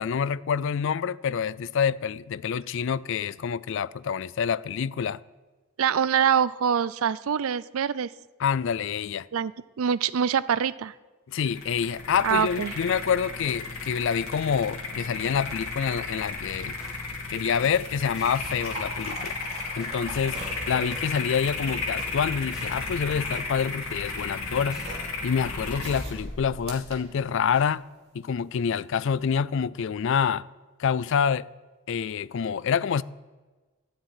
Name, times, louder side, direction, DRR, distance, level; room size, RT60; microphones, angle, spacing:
voice 1, 0.0-5.2 8.4-9.3 11.3-16.8 17.3-19.4 19.8-20.4 20.7-24.8 25.2-27.8 28.1-30.5 30.8-31.5 31.9-33.0, left 7 dB, 60° left, 0.4 m, -27 dB
voice 2, 5.8-8.1 9.3-9.5 9.8-10.9 12.2-12.7, right 7 dB, 75° right, 0.4 m, -24 dB
sound 1, 11.3-27.7, left 3 dB, 80° left, 2.6 m, -34 dB
sound 2, 15.5-27.8 29.0-29.2, right 2 dB, 30° right, 2.6 m, -44 dB
sound 3, 16.3-25.0, equal, 5° right, 2.2 m, -47 dB
13.0 x 7.3 x 9.0 m
head